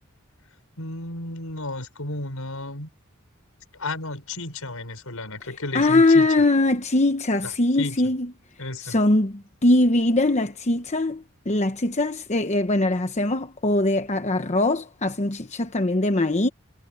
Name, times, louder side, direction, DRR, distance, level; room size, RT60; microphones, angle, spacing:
voice 1, 0.8-2.9 3.8-6.3 7.4-8.1 8.6-9.0, left 2 dB, 80° left, 6.0 m, -33 dB
voice 2, 5.7-8.3 8.8-16.5, left 2 dB, 30° left, 1.0 m, -21 dB
head